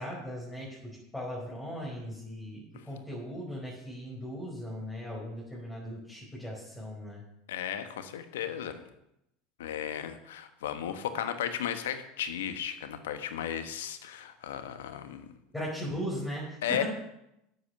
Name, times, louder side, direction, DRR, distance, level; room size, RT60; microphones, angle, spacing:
voice 1, 0.0-7.2 15.5-16.8, equal, 10° left, -6 dB, 4.7 m, -38 dB
voice 2, 7.5-8.8 9.6-15.3 16.6-16.8, left 9 dB, 75° left, 9 dB, 1.2 m, -35 dB
9.9 x 8.0 x 6.9 m, 0.83 s
hypercardioid pair, 80°, 0 cm